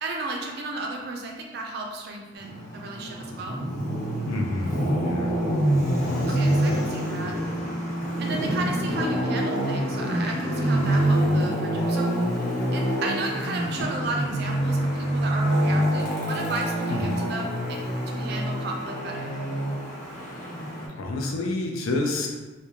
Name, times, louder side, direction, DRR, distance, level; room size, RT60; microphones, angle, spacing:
voice 1, 0.0-3.6 6.0-7.4 8.2-12.2 12.7-17.8 18.1-19.3, right 3 dB, 50° right, 1 dB, 0.3 m, -34 dB
Traffic noise roadway noise, 2.4-20.9, right 1 dB, 35° left, 0.6 m, -26 dB
voice 2, 4.3-5.4 6.0-6.9 7.2-7.6 16.9-17.2 20.2-20.5 20.9-22.3, left 2 dB, 80° left, 1 dB, 0.4 m, -30 dB
2.3 x 2.1 x 2.8 m, 1.2 s
head